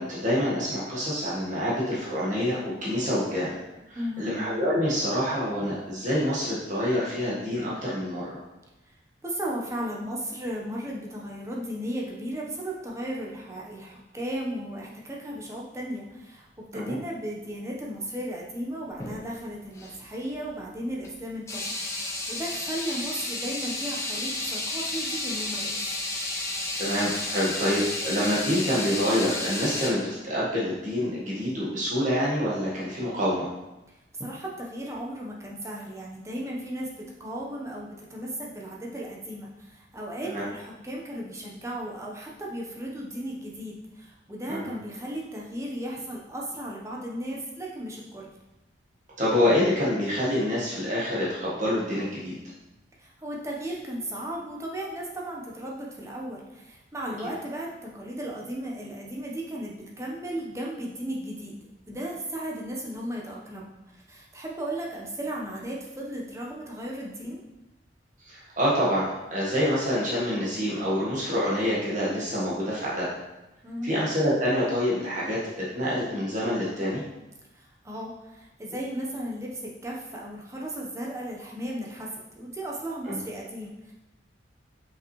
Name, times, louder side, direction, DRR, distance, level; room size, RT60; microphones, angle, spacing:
voice 1, 0.0-3.6 3.9-8.4 16.7-16.9 26.8-33.5 40.2-40.4 44.5-44.7 49.2-52.3 57.2-57.3 68.2-69.0 69.3-73.1 73.8-75.4 75.7-77.0 83.0-83.2, equal, 40° right, -6 dB, 1.4 m, -26 dB
voice 2, 3.9-4.3 8.9-9.0 9.2-25.8 34.2-48.3 53.0-67.4 73.6-73.9 77.5-82.1 82.4-83.9, right 1 dB, 15° right, -3 dB, 0.9 m, -35 dB
sound 1, 18.9-19.2 19.7-19.9 21.0-21.1 21.5-29.9, left 2 dB, 15° left, 0.8 m, -32 dB
5.8 x 5.4 x 3.1 m, 0.98 s
head